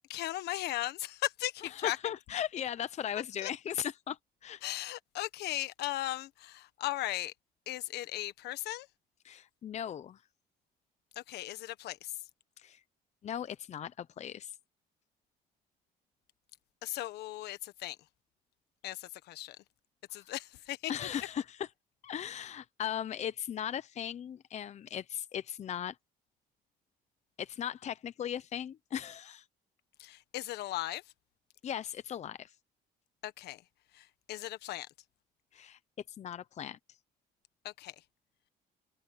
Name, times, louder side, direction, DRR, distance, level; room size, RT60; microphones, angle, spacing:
voice 1, 0.1-2.0 3.4-3.5 4.6-7.3 7.7-8.9 11.3-12.1 16.8-18.0 18.8-19.6 20.1-20.9 30.0-31.0 33.2-33.6 34.0-34.9 37.6-37.9, left 15 dB, 80° left, 1.3 m, -37 dB
voice 2, 1.6-4.6 9.2-10.2 12.6-12.8 13.2-14.5 20.1-20.2 20.9-21.7 22.0-26.0 27.4-29.4 31.6-32.5 35.5-35.8 36.2-36.8, left 9 dB, 40° left, 0.8 m, -38 dB
open air
cardioid pair, 110°, 17 cm